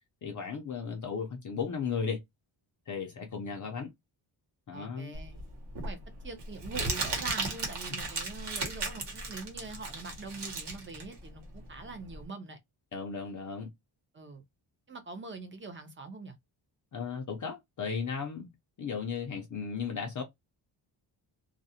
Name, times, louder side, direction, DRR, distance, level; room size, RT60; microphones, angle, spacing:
voice 1, 0.2-2.2 2.9-3.9 4.7-5.2 12.9-13.7 16.9-18.5 18.8-20.2, left 6 dB, 40° left, 0.5 m, -35 dB
voice 2, 4.7-5.4 5.8-12.6 14.1-14.4 14.9-16.4, right 3 dB, 25° right, 0.5 m, -43 dB
Crumpling crinkling, 5.1-12.2, right 3 dB, 55° right, 1.0 m, -36 dB
2.4 x 2.1 x 2.7 m
wide cardioid pair, 155°, 48 cm